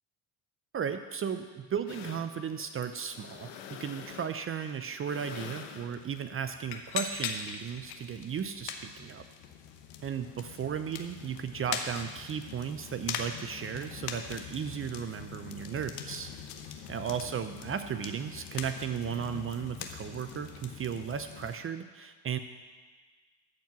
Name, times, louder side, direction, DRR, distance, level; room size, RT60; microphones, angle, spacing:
voice 1, 0.7-9.2 10.0-16.3 16.9-22.4, right 7 dB, 35° right, 9 dB, 0.6 m, -35 dB
sound 1, 1.9-21.6, left 7 dB, 80° left, 1.1 m, -42 dB
13.5 x 4.5 x 7.3 m, 1.4 s
supercardioid pair, 80°, 36 cm